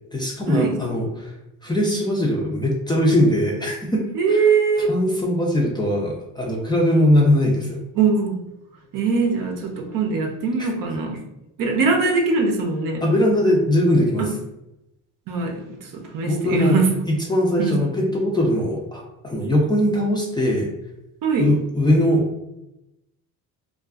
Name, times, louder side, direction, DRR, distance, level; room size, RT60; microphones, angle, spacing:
voice 1, 0.1-1.3 1.6-4.0 4.3-4.4 4.8-7.8 10.6-10.7 13.0-14.3 16.2-16.8 17.0-20.7 21.4-22.4, left 1 dB, 10° left, -3 dB, 0.4 m, -20 dB
voice 2, 4.1-4.9 8.0-8.4 8.9-11.2 11.6-13.0 14.2-14.3 15.3-16.9 17.6-17.8 21.2-21.5, right 4 dB, 60° right, 2 dB, 0.6 m, -21 dB
2.5 x 2.3 x 2.3 m, 0.90 s
cardioid pair, 105°, 38 cm